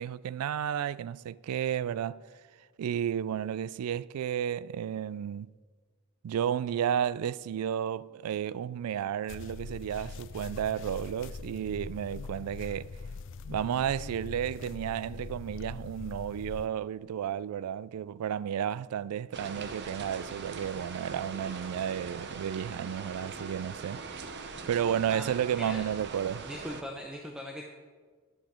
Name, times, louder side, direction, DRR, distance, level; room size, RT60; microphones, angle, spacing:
voice 1, 0.0-2.2 2.8-5.5 6.2-13.0 13.5-24.2 24.7-26.5, right 9 dB, 85° right, 0.3 m, -32 dB
sound 1, 9.3-16.7, left 4 dB, 60° left, 0.4 m, -42 dB
sound 2, 19.3-26.8, right 4 dB, 50° right, 0.8 m, -41 dB
voice 2, 25.1-25.8 26.4-27.6, equal, 5° right, 0.7 m, -41 dB
11.0 x 10.0 x 4.4 m
head